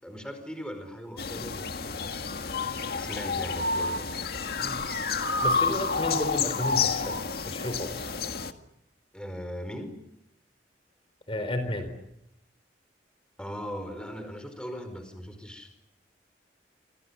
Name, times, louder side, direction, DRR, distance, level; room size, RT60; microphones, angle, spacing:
voice 1, 0.0-2.1 2.9-4.1 9.1-9.9 13.4-15.7, equal, 5° left, 7 dB, 4.9 m, -39 dB
sound 1, 1.2-8.5, left 4 dB, 60° left, 1.8 m, -29 dB
voice 2, 5.4-8.1 11.3-11.9, left 1 dB, 30° left, 9 dB, 4.2 m, -33 dB
28.5 x 26.5 x 7.1 m, 0.82 s
head